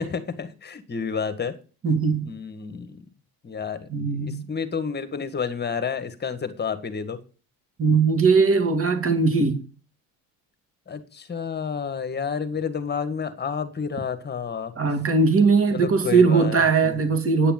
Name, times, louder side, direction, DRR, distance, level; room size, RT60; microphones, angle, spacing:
voice 1, 0.0-1.6 2.2-3.0 3.4-7.2 10.9-14.7 15.7-17.0, left 6 dB, 25° left, 1.7 m, -30 dB
voice 2, 1.8-2.3 3.9-4.4 7.8-9.6 14.8-17.5, right 4 dB, 30° right, 2.6 m, -20 dB
9.7 x 6.8 x 7.7 m
supercardioid pair, 105°, 41 cm